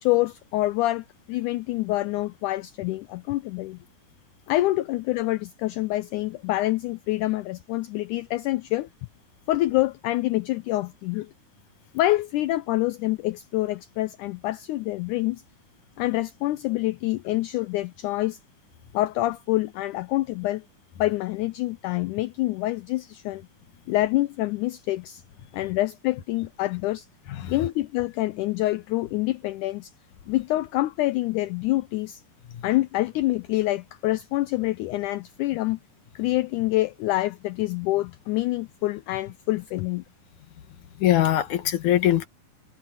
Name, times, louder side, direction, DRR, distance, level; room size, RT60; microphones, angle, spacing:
voice 1, 0.0-3.8 4.5-8.9 9.5-11.3 11.9-15.4 16.0-18.4 18.9-20.6 21.0-23.4 23.9-25.2 25.5-27.1 27.5-29.9 30.3-32.2 32.6-35.8 36.2-40.0, left 17 dB, 85° left, 1.7 m, -26 dB
voice 2, 41.0-42.3, left 12 dB, 65° left, 2.5 m, -21 dB
omnidirectional pair, 4.1 m